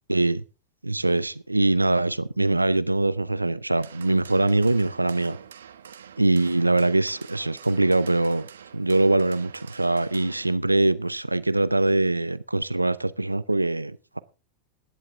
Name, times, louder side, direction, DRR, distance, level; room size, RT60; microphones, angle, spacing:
voice 1, 0.1-0.4 0.8-5.4 6.2-8.5 8.7-14.2, right 2 dB, 85° right, 0.6 m, -23 dB
sound 1, 3.8-10.6, right 8 dB, 65° right, 1.1 m, -46 dB
16.0 x 10.5 x 3.5 m
figure-of-eight pair, 90°, 0 cm